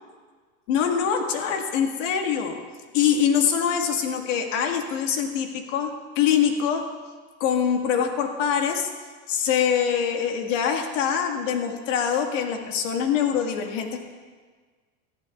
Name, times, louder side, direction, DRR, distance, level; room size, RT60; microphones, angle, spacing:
voice 1, 0.7-2.6 2.9-6.8 7.4-8.9 9.3-14.0, left 8 dB, 65° left, 3 dB, 1.6 m, -24 dB
18.5 x 13.5 x 2.3 m, 1.5 s
supercardioid pair, 170°, 40 cm